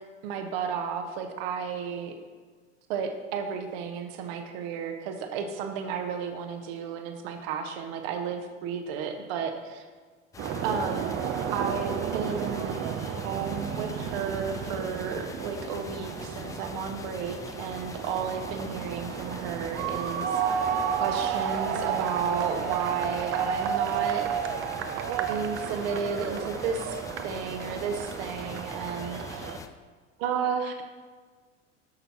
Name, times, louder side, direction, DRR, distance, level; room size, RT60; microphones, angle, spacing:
voice 1, 0.2-2.2 2.9-9.8 10.6-11.1 11.5-12.8 13.2-20.3 21.0-24.3 25.3-27.0 27.2-29.5 30.2-30.8, right 6 dB, 50° right, 6 dB, 1.2 m, -32 dB
sound 1, 10.3-29.7, left 5 dB, 10° left, 0.3 m, -43 dB
sound 2, 10.4-29.6, right 8 dB, 35° right, 0.7 m, -32 dB
11.0 x 6.8 x 4.4 m, 1.5 s
figure-of-eight pair, 75°, 38 cm